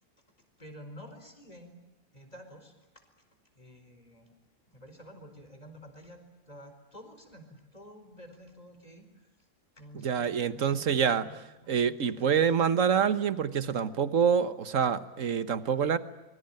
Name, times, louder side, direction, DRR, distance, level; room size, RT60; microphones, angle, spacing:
voice 1, 0.6-1.7 2.1-3.0 3.5-4.3 4.7-6.2 6.5-9.3 9.7-11.3 11.6-12.4, equal, 25° left, 6 dB, 4.7 m, -50 dB
voice 2, 9.9-11.3 11.7-16.0, right 7 dB, 55° right, 13 dB, 1.5 m, -26 dB
25.5 x 23.0 x 9.0 m, 1.1 s
omnidirectional pair, 1.6 m